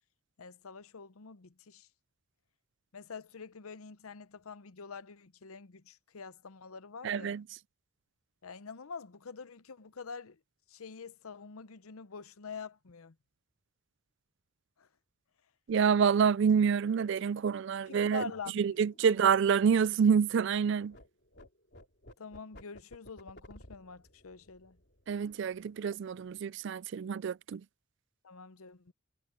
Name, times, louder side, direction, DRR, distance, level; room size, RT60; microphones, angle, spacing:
voice 1, 0.4-1.9 2.9-7.4 8.4-10.4 10.7-13.1 14.8-14.9 17.9-18.8 19.0-19.1 22.2-24.8 28.2-28.9, left 5 dB, 80° left, 0.8 m, -46 dB
voice 2, 7.0-7.4 15.7-18.2 18.6-20.9 25.1-27.6, right 6 dB, 55° right, 0.3 m, -27 dB
sound 1, 17.2-20.6 20.9-25.9 26.1-26.4 26.7-27.2, left 1 dB, 50° left, 3.5 m, -57 dB
head